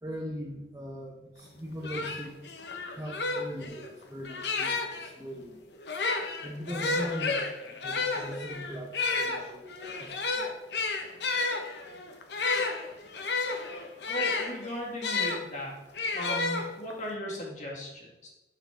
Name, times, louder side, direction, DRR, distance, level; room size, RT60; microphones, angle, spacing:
voice 1, 0.0-2.3 2.9-5.6 6.4-10.4, equal, 20° right, -2 dB, 0.9 m, -40 dB
sound 1, 1.5-1.6 1.8-5.1 5.8-15.4 15.9-17.0, left 3 dB, 70° left, 0.9 m, -31 dB
voice 2, 14.1-15.7 16.1-18.3, equal, 45° left, -3 dB, 2.1 m, -37 dB
11.0 x 4.9 x 3.4 m, 1.0 s
head